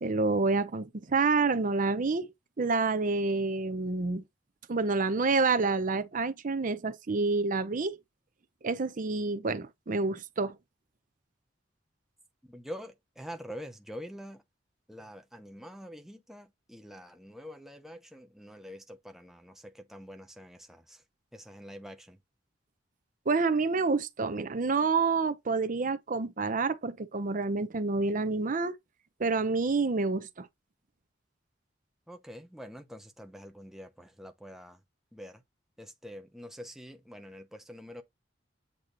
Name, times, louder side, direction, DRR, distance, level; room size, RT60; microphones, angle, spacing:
voice 1, 0.0-2.3 2.6-4.2 4.7-8.0 8.6-10.6 23.3-28.8 29.2-30.5, right 3 dB, 45° right, 0.7 m, -28 dB
voice 2, 12.4-14.4 14.9-21.0 21.3-22.2 32.1-34.8 35.1-35.4 35.8-38.0, equal, ahead, 0.7 m, -46 dB
8.3 x 2.9 x 3.9 m
head